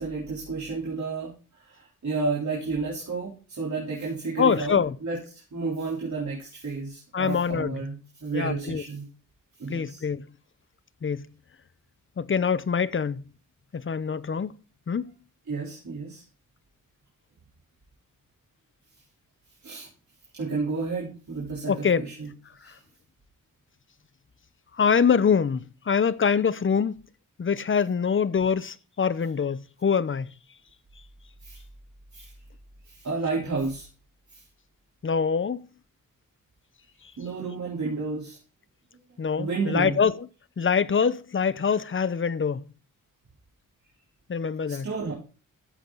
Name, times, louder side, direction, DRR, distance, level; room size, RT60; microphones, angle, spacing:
voice 1, 0.0-5.2 5.5-9.1 9.6-10.0 15.5-16.2 19.6-19.9 20.3-22.3 22.6-22.7 31.4-31.6 32.1-32.3 32.9-33.9 34.3-34.4 37.2-38.4 39.4-40.0 44.7-45.1, right 4 dB, 55° right, 3.6 m, -31 dB
voice 2, 4.4-5.0 7.1-7.8 8.3-8.8 9.7-10.3 11.0-11.3 12.2-13.2 13.7-14.6 14.9-15.1 21.7-22.0 22.6-22.7 24.8-27.0 27.4-30.3 35.0-35.7 39.2-40.3 40.6-42.6 44.3-44.9, left 6 dB, 40° left, 0.7 m, -24 dB
14.0 x 7.8 x 3.9 m
wide cardioid pair, 105°, 33 cm